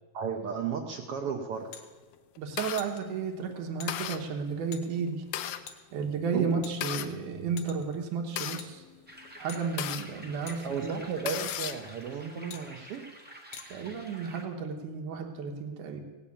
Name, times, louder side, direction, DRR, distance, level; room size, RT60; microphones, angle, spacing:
voice 1, 0.1-1.8 6.3-6.6 10.6-13.0, right 6 dB, 70° right, 3 dB, 1.4 m, -34 dB
sound 1, 1.7-1.9 2.8-3.0 3.8-3.9 4.7-4.8 5.7-5.8 6.6-7.1 7.6-7.9 8.6-8.7 9.5-9.7 10.5-10.6 11.5-11.6 12.5-12.6 13.5-13.7, left 8 dB, 60° left, 1.8 m, -44 dB
sound 2, 1.9-2.8 3.4-3.5 3.9-4.2 5.0-5.6 6.5-7.1 7.9-10.1 10.6-10.7 11.0-11.9, left 11 dB, 75° left, 2.1 m, -35 dB
voice 2, 2.4-5.2 5.9-8.8 9.4-11.0 13.7-16.0, right 5 dB, 85° right, 3 dB, 2.8 m, -33 dB
sound 3, 9.1-14.5, right 1 dB, 10° right, 0.4 m, -49 dB
17.0 x 7.3 x 8.5 m, 1.3 s
omnidirectional pair, 3.5 m